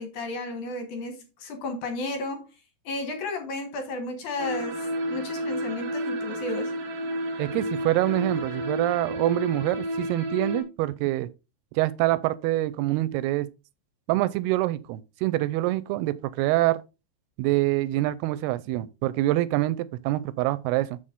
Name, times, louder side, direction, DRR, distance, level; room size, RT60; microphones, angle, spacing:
voice 1, 0.0-2.5 2.8-6.7, left 2 dB, 60° left, 2.3 m, -33 dB
sound 1, 4.4-10.6, equal, 70° right, 1.5 m, -31 dB
voice 2, 7.4-11.3 11.7-13.5 14.1-16.8 17.4-21.0, right 17 dB, 85° right, 2.6 m, -25 dB
7.5 x 6.5 x 3.7 m
omnidirectional pair, 4.6 m